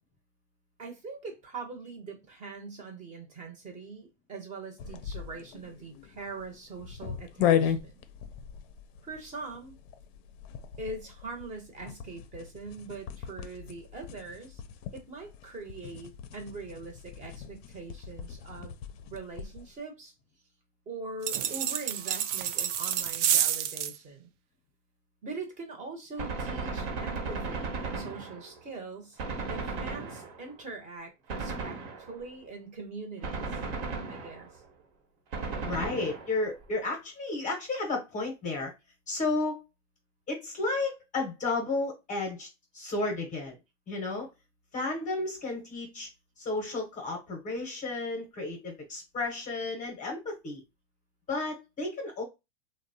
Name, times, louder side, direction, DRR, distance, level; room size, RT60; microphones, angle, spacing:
voice 1, 0.8-8.0 9.0-9.7 10.8-14.6 14.9-18.8 19.1-20.1 20.9-24.3 25.2-29.2 29.5-33.5 34.1-34.6, right 3 dB, 20° right, 0.7 m, -42 dB
sound 1, 4.8-19.7, left 9 dB, 55° left, 0.5 m, -36 dB
sound 2, 21.2-24.0, right 10 dB, 70° right, 0.5 m, -29 dB
Gunshot gunfire, 26.2-28.7 29.2-30.6 31.3-32.3 33.2-34.6 35.3-36.6, right 3 dB, 55° right, 1.0 m, -36 dB
voice 2, 35.6-38.7 39.1-39.6 40.3-42.5 42.7-43.6 43.9-44.3 44.7-46.1 46.4-50.6 51.3-52.2, left 2 dB, 20° left, 0.7 m, -32 dB
2.8 x 2.1 x 2.6 m
supercardioid pair, 135°, 37 cm